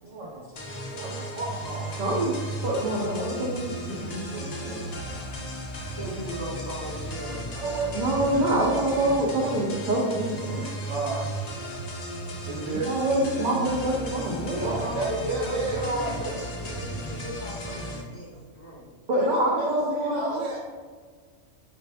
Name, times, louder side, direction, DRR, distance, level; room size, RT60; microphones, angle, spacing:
sound 1, 0.5-18.0, right 1 dB, 55° left, 0.4 m, -35 dB
voice 1, 1.3-1.9 7.5-8.7 10.9-11.2 12.5-12.9 14.6-16.4 19.2-20.6, right 3 dB, 80° right, -3 dB, 1.0 m, -32 dB
voice 2, 2.0-2.3 2.6-4.8 7.9-10.7 12.7-14.6 19.1-20.3, right 1 dB, 60° right, -3 dB, 0.5 m, -26 dB
voice 3, 5.9-7.4 14.5-18.9, equal, 10° left, -8 dB, 0.8 m, -36 dB
3.2 x 2.5 x 3.3 m, 1.6 s
omnidirectional pair, 1.3 m